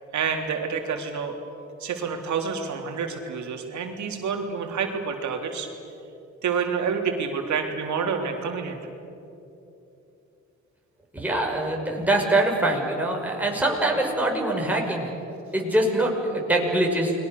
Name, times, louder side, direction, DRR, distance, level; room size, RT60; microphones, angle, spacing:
voice 1, 0.1-1.4 1.8-5.7 6.4-8.8, right 6 dB, 70° right, 3 dB, 3.6 m, -28 dB
voice 2, 11.1-15.1 15.5-17.1, right 1 dB, 5° right, -1 dB, 6.1 m, -24 dB
30.0 x 22.0 x 6.9 m, 2.9 s
cardioid pair, 90°, 30 cm